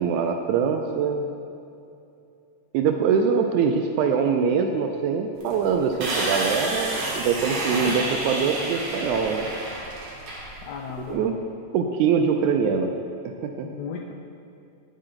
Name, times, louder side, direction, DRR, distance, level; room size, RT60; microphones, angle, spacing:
voice 1, 0.0-1.3 2.7-9.5 11.1-11.4 11.7-12.9 13.3-13.7, right 6 dB, 80° right, 4 dB, 1.8 m, -23 dB
sound 1, 5.4-11.1, right 2 dB, 60° right, 2.7 m, -30 dB
voice 2, 10.6-11.4 13.6-14.1, left 6 dB, 80° left, 3 dB, 1.7 m, -35 dB
9.2 x 8.6 x 3.8 m, 2.6 s
omnidirectional pair, 3.7 m